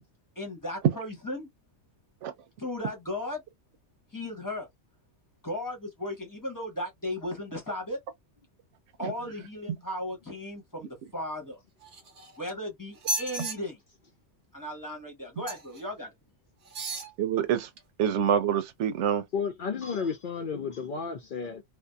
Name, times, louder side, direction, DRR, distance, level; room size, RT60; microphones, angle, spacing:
voice 1, 0.4-1.5 2.6-3.4 4.1-4.7 5.4-8.0 9.0-11.6 12.4-13.8 14.5-16.1, left 1 dB, 20° left, 0.9 m, -36 dB
sound 1, 11.8-12.5 13.0-13.6 15.4-15.8 16.6-17.1 17.8-17.9, right 2 dB, 60° right, 1.0 m, -34 dB
voice 2, 17.2-17.7 18.0-19.2, right 9 dB, 85° right, 0.9 m, -26 dB
voice 3, 19.3-21.6, left 6 dB, 60° left, 0.6 m, -32 dB
2.7 x 2.1 x 2.2 m
omnidirectional pair, 1.2 m